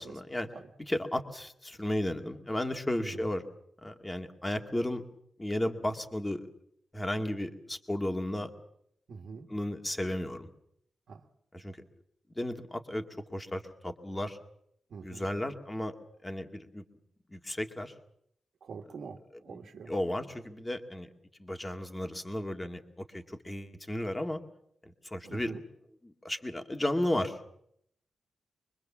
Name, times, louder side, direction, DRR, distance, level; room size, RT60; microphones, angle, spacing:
voice 1, 0.0-0.5 0.9-3.4 3.8-5.0 5.4-6.5 6.9-8.5 9.5-10.5 11.5-11.8 12.4-13.0 13.3-14.4 15.0-15.9 16.2-16.8 17.3-17.9 19.9-21.1 21.4-22.8 23.1-24.4 24.9-25.5 26.1-27.4, left 1 dB, 15° left, 5 dB, 2.1 m, -34 dB
voice 2, 9.1-9.5 11.1-11.3 14.9-15.3 18.6-19.9 25.2-25.6, right 5 dB, 60° right, 2 dB, 2.0 m, -45 dB
24.0 x 24.0 x 7.4 m, 0.72 s
wide cardioid pair, 150°, 0 cm